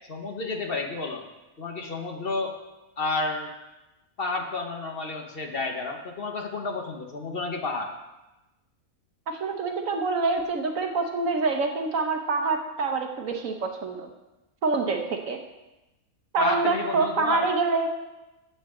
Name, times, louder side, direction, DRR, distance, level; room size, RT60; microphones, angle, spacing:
voice 1, 0.1-1.2 1.6-2.5 3.0-3.5 4.2-7.9 16.4-17.5, left 3 dB, 45° left, 3 dB, 1.3 m, -31 dB
voice 2, 9.3-14.1 14.6-15.4 16.3-17.9, right 4 dB, 65° right, 4 dB, 1.4 m, -26 dB
14.0 x 8.3 x 3.8 m, 1.0 s
omnidirectional pair, 1.5 m